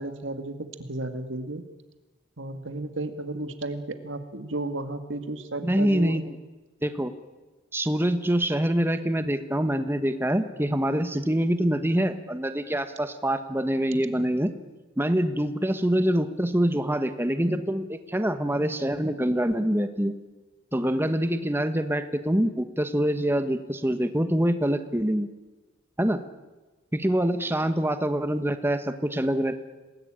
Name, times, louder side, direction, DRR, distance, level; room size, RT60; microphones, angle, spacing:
voice 1, 0.0-1.6 2.4-6.2, right 2 dB, 80° right, 8 dB, 2.2 m, -33 dB
voice 2, 5.6-6.4 6.8-7.1 7.7-14.5 15.0-20.1 20.7-25.3 26.0-26.2 26.9-29.6, right 1 dB, 10° right, 9 dB, 1.3 m, -25 dB
27.0 x 19.5 x 8.9 m, 1.2 s
head